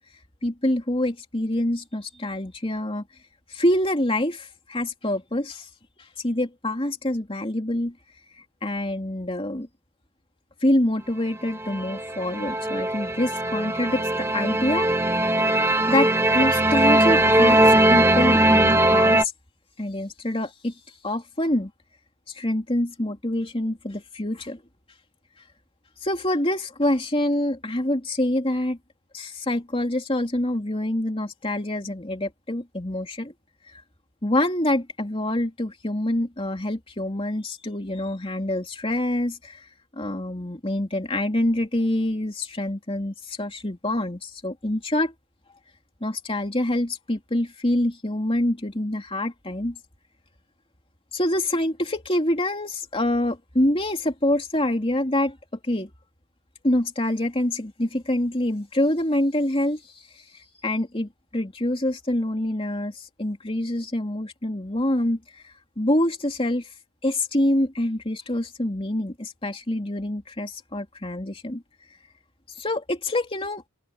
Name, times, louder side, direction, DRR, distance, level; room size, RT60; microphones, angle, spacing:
voice 1, 0.4-3.0 3.5-5.7 6.2-7.9 8.6-9.7 10.6-14.9 15.2-15.3 15.9-19.3 19.8-20.7 21.0-21.7 22.3-24.6 26.0-28.8 29.1-33.3 34.2-39.6 39.9-45.1 46.0-49.8 51.1-55.4 55.6-55.9 56.6-59.8 60.6-65.2 65.8-66.7 67.0-71.6 72.6-73.6, left 1 dB, 25° left, 2.9 m, -26 dB
sound 1, 11.6-19.2, right 1 dB, 10° right, 1.3 m, -20 dB
head